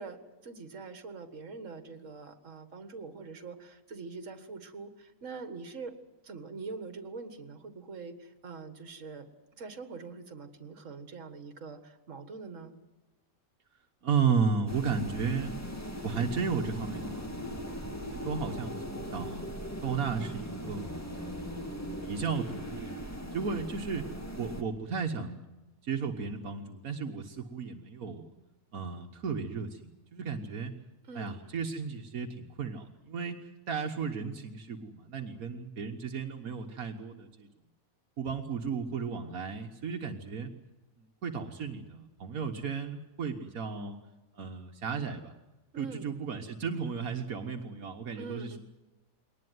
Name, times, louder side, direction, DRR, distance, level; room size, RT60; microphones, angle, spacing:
voice 1, 0.0-5.9 6.2-9.3 9.6-12.7 31.1-31.4 45.7-46.1 48.1-48.6, right 4 dB, 60° right, 9 dB, 2.1 m, -44 dB
voice 2, 14.0-15.6 16.0-17.7 18.1-19.4 19.8-21.5 22.0-25.4 25.8-28.3 28.7-29.8 30.1-30.7 31.2-37.5 38.2-40.5 41.0-44.0 44.3-45.3 45.8-48.6, right 5 dB, 80° right, 4 dB, 1.7 m, -34 dB
sound 1, 14.7-24.6, equal, 10° left, 2.3 m, -39 dB
22.0 x 19.0 x 9.4 m, 1.1 s
omnidirectional pair, 1.5 m